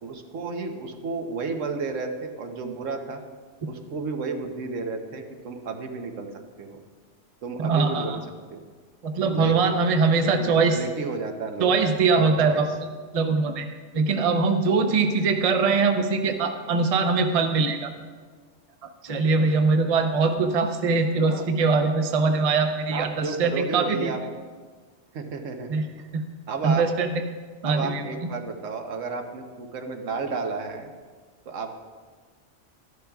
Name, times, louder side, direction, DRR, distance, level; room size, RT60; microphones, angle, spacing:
voice 1, 0.0-3.2 3.7-6.3 6.6-6.8 7.4-8.1 8.5-8.6 9.3-9.8 10.4-12.6 21.3-21.5 22.9-24.2 25.1-25.7 26.5-26.8 27.6-30.9 31.5-31.7, right 4 dB, 85° right, 5 dB, 1.2 m, -32 dB
voice 2, 7.6-8.2 9.0-10.8 11.6-12.7 13.1-13.7 13.9-17.9 18.8-24.1 25.7-25.8 26.1-26.2 26.6-27.2 27.6-28.0, right 4 dB, 35° right, 6 dB, 0.6 m, -22 dB
13.0 x 11.0 x 2.3 m, 1.5 s
omnidirectional pair, 1.3 m